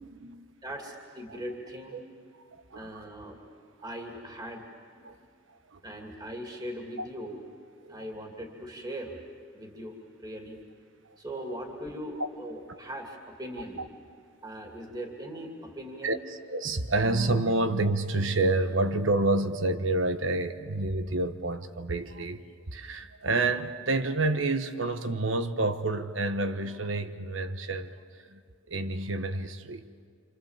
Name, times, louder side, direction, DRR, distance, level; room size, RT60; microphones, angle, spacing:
voice 1, 0.0-0.5 1.3-1.4 1.9-2.0 2.5-3.0 5.0-5.2 5.7-5.8 7.0-7.1 7.8-8.0 10.5-10.6 11.0-11.1 16.0-22.4 22.7-28.4 28.7-29.9, right 2 dB, 70° right, 1.3 m, -29 dB
voice 2, 0.6-2.0 2.7-3.4 3.8-4.6 4.9-5.1 5.8-7.4 7.9-9.2 9.5-10.6 11.2-13.9 14.4-16.2, equal, 20° right, 2.6 m, -40 dB
28.0 x 27.5 x 7.4 m
head